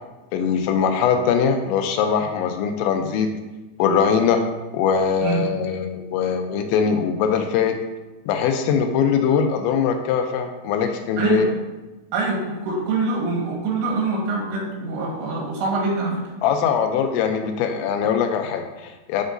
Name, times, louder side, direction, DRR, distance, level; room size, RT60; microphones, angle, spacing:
voice 1, 0.3-3.3 3.8-4.4 4.7-7.8 8.3-11.5 16.4-19.2, left 7 dB, 90° left, 6 dB, 2.9 m, -21 dB
voice 2, 11.2-11.5 12.1-16.3, right 3 dB, 80° right, -3 dB, 3.7 m, -24 dB
10.5 x 3.9 x 2.6 m, 1.1 s
omnidirectional pair, 5.1 m